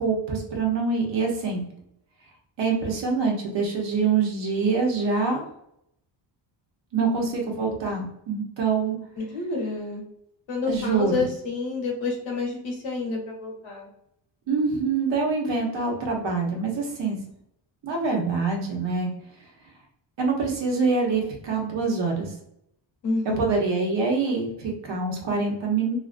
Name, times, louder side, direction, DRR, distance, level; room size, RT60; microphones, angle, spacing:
voice 1, 0.0-1.6 2.6-5.5 6.9-9.0 10.7-11.2 14.5-17.2 17.8-19.1 20.2-22.3 23.4-26.0, right 4 dB, 70° right, 0 dB, 1.0 m, -25 dB
voice 2, 9.2-10.0 10.5-13.9 23.0-23.6, left 3 dB, 90° left, 0 dB, 1.1 m, -29 dB
2.7 x 2.5 x 2.5 m, 0.75 s
cardioid pair, 120°, 45 cm